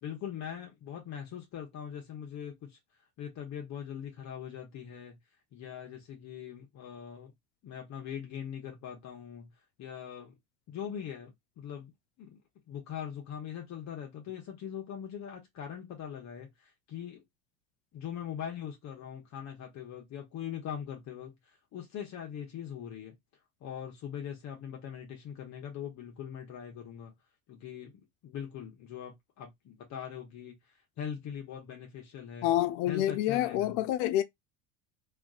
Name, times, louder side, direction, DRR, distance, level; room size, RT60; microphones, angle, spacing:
voice 1, 0.0-2.8 3.2-5.2 5.5-7.3 7.6-9.5 9.8-10.3 10.7-11.9 12.2-12.4 12.7-17.2 17.9-23.1 23.6-27.1 27.5-32.5 32.9-33.8, left 9 dB, 45° left, 0.9 m, -41 dB
voice 2, 32.4-34.2, left 13 dB, 65° left, 0.5 m, -27 dB
3.4 x 2.4 x 2.4 m
supercardioid pair, 95°, 38 cm